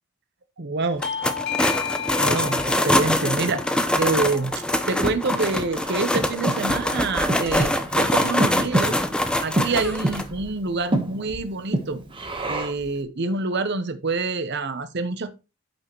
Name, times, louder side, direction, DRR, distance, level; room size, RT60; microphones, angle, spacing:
voice 1, 0.6-1.0 2.2-3.6 4.0-9.0 9.4-12.0 12.5-15.4, right 3 dB, 50° right, 11 dB, 0.8 m, -27 dB
Bell / Doorbell, 1.0-6.2, left 8 dB, 50° left, 1.0 m, -34 dB
sound 1, 1.0-10.2, left 1 dB, 5° left, 0.5 m, -24 dB
Breathing, 4.4-12.9, right 1 dB, 25° right, 1.1 m, -29 dB
9.0 x 5.4 x 3.0 m, 0.28 s
head